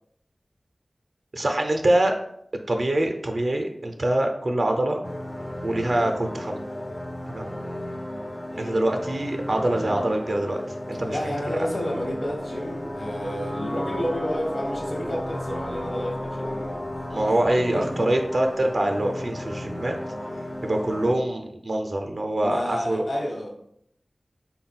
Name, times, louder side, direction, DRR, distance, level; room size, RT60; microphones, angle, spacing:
voice 1, 1.3-2.2 2.7-5.0 5.6-6.6 7.3-7.5 8.6-10.6 10.9-11.2 17.1-20.0 20.6-23.1, right 1 dB, 65° right, 4 dB, 0.4 m, -24 dB
sound 1, 5.0-21.1, left 1 dB, 25° left, 0.4 m, -33 dB
voice 2, 10.9-16.9 17.1-18.1 22.4-23.5, equal, 65° left, -1 dB, 1.0 m, -31 dB
3.9 x 2.1 x 4.0 m, 0.70 s
wide cardioid pair, 55°, 0 cm